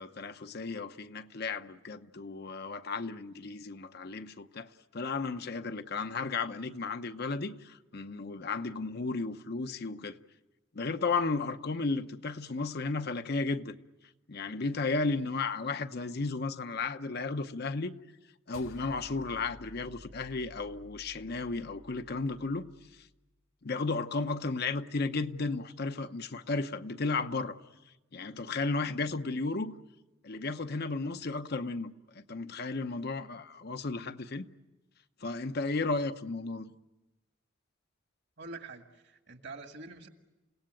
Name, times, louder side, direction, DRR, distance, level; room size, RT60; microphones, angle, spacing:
voice 1, 0.0-10.2 10.7-13.8 14.3-18.0 18.5-22.7 23.6-27.6 28.1-29.7 30.2-34.5 35.2-36.7, left 3 dB, 50° left, 0.8 m, -34 dB
sound 1, 18.5-23.1, left 1 dB, 85° left, 2.3 m, -53 dB
voice 2, 38.4-40.1, right 3 dB, 55° right, 1.9 m, -45 dB
29.0 x 17.5 x 9.0 m
head